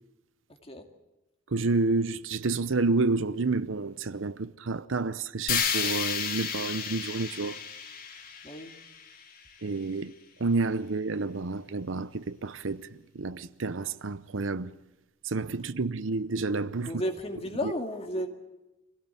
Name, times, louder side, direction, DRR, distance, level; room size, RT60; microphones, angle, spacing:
voice 1, 1.5-7.6 9.6-10.1 10.4-12.9 13.1-14.8 15.2-16.9 17.6-17.7, right 3 dB, 80° right, 0.8 m, -29 dB
sound 1, 5.5-9.6, left 6 dB, 45° left, 2.9 m, -32 dB
voice 2, 16.8-18.3, equal, 30° left, 2.2 m, -33 dB
25.0 x 17.0 x 9.1 m
head